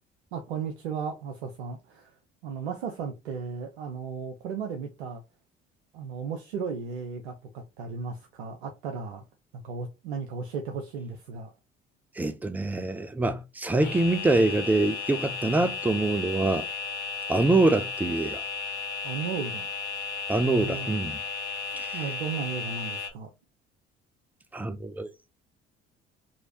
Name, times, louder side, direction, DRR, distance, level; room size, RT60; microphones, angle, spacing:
voice 1, 0.3-2.1 2.4-5.2 5.9-9.2 9.5-11.5 19.0-19.7 20.4-20.9 21.9-23.3, right 5 dB, 75° right, 0.6 m, -35 dB
voice 2, 12.2-16.7 17.3-18.4 20.3-21.2 21.8-22.0 24.5-25.1, right 2 dB, 5° right, 0.3 m, -25 dB
sound 1, 13.8-23.1, left 4 dB, 85° left, 0.7 m, -34 dB
3.0 x 2.7 x 2.6 m
figure-of-eight pair, 50°, 32 cm